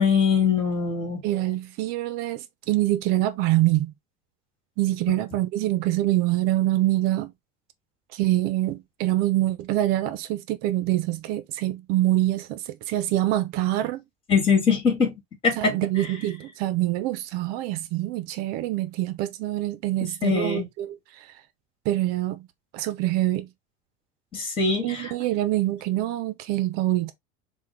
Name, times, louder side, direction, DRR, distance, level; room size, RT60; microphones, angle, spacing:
voice 1, 0.0-1.2 14.3-15.2 15.4-15.8 20.2-20.6 24.3-25.1, left 5 dB, 30° left, 2.3 m, -22 dB
voice 2, 1.2-3.9 4.8-7.3 8.1-14.0 15.6-21.3 21.8-22.5 22.7-23.5 24.8-27.1, right 15 dB, 65° right, 0.7 m, -25 dB
5.8 x 2.4 x 3.2 m
supercardioid pair, 135°, 17 cm